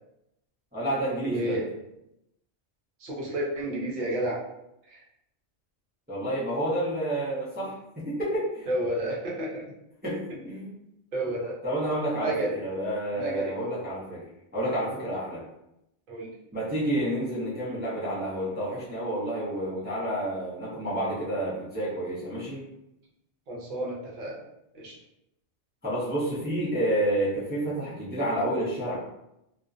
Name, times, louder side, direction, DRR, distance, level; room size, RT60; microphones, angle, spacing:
voice 1, 0.7-1.6 6.1-8.7 10.0-10.7 11.6-14.2 14.5-15.4 16.5-22.6 25.8-29.0, right 1 dB, 10° right, -9 dB, 0.5 m, -29 dB
voice 2, 1.3-1.7 3.0-4.4 4.9-5.0 8.7-9.6 11.1-11.6 12.2-12.6 13.1-13.8 16.1-16.3 23.5-24.4 24.7-25.0, right 1 dB, 55° right, -4 dB, 0.7 m, -31 dB
2.4 x 2.1 x 2.4 m, 0.84 s
omnidirectional pair, 1.1 m